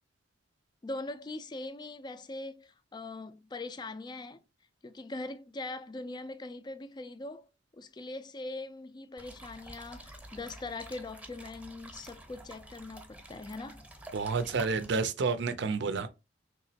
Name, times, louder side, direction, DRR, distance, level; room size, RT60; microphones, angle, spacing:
voice 1, 0.8-4.4 4.8-13.9, left 2 dB, 25° left, 0.3 m, -41 dB
sound 1, 9.2-14.9, right 1 dB, 10° right, 0.8 m, -49 dB
voice 2, 14.1-16.1, right 4 dB, 70° right, 0.5 m, -30 dB
3.6 x 2.9 x 2.8 m
head